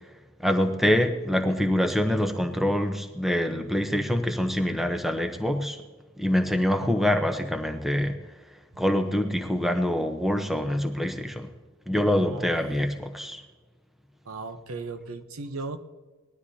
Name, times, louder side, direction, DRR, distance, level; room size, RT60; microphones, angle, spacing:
voice 1, 0.4-5.8 6.2-8.2 8.8-11.5 11.9-13.4, equal, ahead, 5 dB, 0.8 m, -25 dB
voice 2, 12.1-12.5 14.3-15.8, right 3 dB, 75° right, 9 dB, 0.9 m, -36 dB
20.0 x 13.0 x 2.8 m, 1.3 s
head